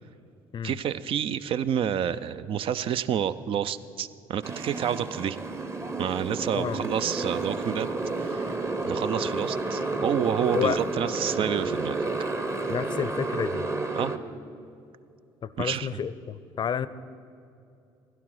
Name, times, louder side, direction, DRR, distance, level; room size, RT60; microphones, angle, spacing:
voice 1, 0.6-5.4 6.0-7.9 8.2-8.6 8.9-12.0 14.0-14.1 15.6-16.0, right 9 dB, 50° right, 14 dB, 0.5 m, -29 dB
Motorcycle, 4.4-14.2, right 3 dB, 25° right, 1.0 m, -31 dB
voice 2, 12.7-13.7 15.4-16.9, left 8 dB, 40° left, 16 dB, 0.6 m, -30 dB
16.0 x 11.0 x 4.8 m, 2.6 s
hypercardioid pair, 55°, 12 cm